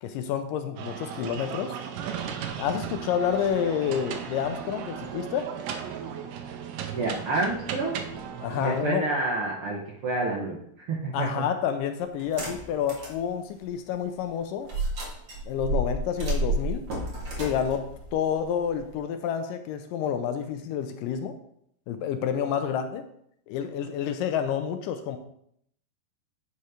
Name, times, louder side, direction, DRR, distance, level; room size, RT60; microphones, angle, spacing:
voice 1, 0.0-1.8 2.6-5.5 8.4-9.1 11.1-14.7 15.5-16.8 17.4-21.4 21.9-23.0 23.5-25.2, left 8 dB, 80° left, 8 dB, 2.2 m, -29 dB
sound 1, 0.8-8.8, right 8 dB, 80° right, 2.3 m, -36 dB
voice 2, 6.9-8.0 8.6-11.4, right 2 dB, 60° right, -4 dB, 1.5 m, -29 dB
sound 2, 12.2-13.2 13.6-13.7 14.7-18.9, right 1 dB, 45° right, 2.4 m, -31 dB
9.4 x 4.3 x 4.9 m, 0.70 s
omnidirectional pair, 4.0 m